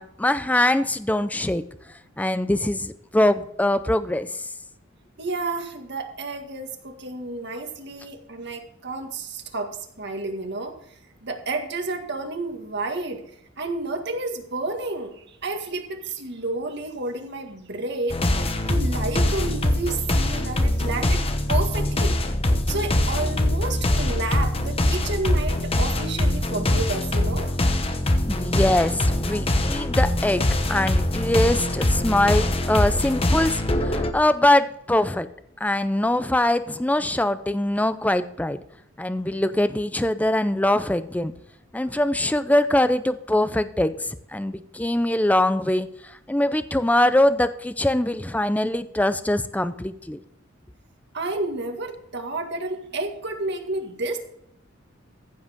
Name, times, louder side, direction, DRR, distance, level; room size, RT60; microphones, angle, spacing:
voice 1, 0.0-1.6 2.2-4.4 28.3-35.3 35.6-38.6 39.0-41.3 41.7-50.2, left 1 dB, 10° left, 12 dB, 0.5 m, -23 dB
voice 2, 5.2-10.7 11.2-13.2 13.6-22.1 22.7-27.6 41.8-41.9 51.1-54.2, right 2 dB, 60° right, 4 dB, 1.8 m, -31 dB
sound 1, 18.1-34.1, left 1 dB, 30° left, 1.0 m, -23 dB
15.0 x 7.8 x 3.6 m, 0.75 s
head